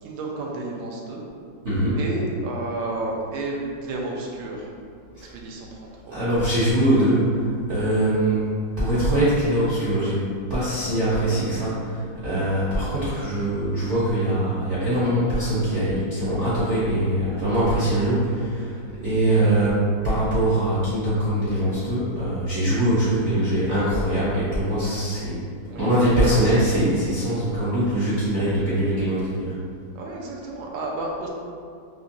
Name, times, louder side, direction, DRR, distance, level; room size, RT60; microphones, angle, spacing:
voice 1, 0.0-1.2 1.9-4.7 5.2-6.2 19.3-19.7 25.7-26.0 29.9-31.3, right 2 dB, 85° right, -2 dB, 1.3 m, -32 dB
voice 2, 1.6-2.0 5.2-5.3 6.1-8.5 8.8-19.8 20.0-25.4 25.7-29.5, right 1 dB, 60° right, -11 dB, 0.7 m, -22 dB
3.8 x 2.8 x 2.6 m, 2.3 s
omnidirectional pair, 2.1 m